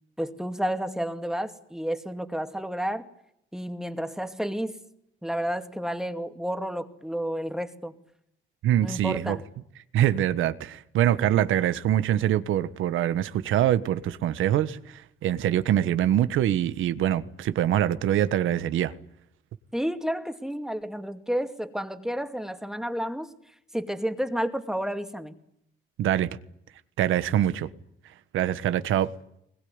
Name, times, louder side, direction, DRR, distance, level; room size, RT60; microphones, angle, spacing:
voice 1, 0.2-3.1 3.5-4.8 5.2-8.0 8.8-9.4 19.7-23.3 23.7-25.3, equal, 5° right, 2.4 m, -31 dB
voice 2, 8.6-9.4 9.9-18.9 26.0-26.3 27.0-27.7 28.3-29.1, right 11 dB, 85° right, 1.4 m, -24 dB
22.0 x 21.0 x 9.7 m
cardioid pair, 90°, 20 cm